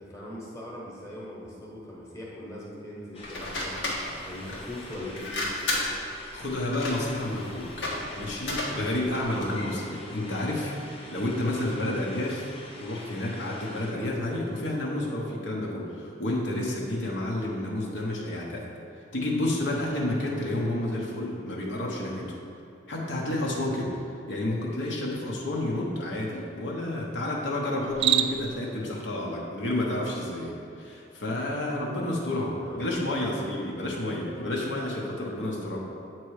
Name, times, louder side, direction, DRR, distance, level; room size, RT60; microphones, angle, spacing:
voice 1, 0.0-5.4 32.7-33.1, left 1 dB, 15° left, -5 dB, 1.1 m, -41 dB
sound 1, 3.1-13.9, left 2 dB, 30° left, 0.8 m, -45 dB
sound 2, 3.2-9.6, left 2 dB, 90° left, 1.3 m, -34 dB
voice 2, 6.3-7.8 8.2-12.5 12.8-18.7 19.1-22.4 22.9-23.9 24.3-35.8, left 1 dB, 70° left, -3 dB, 1.0 m, -30 dB
Cricket, 27.8-28.6, right 10 dB, 70° right, 0.3 m, -25 dB
8.0 x 3.0 x 4.7 m, 2.8 s
head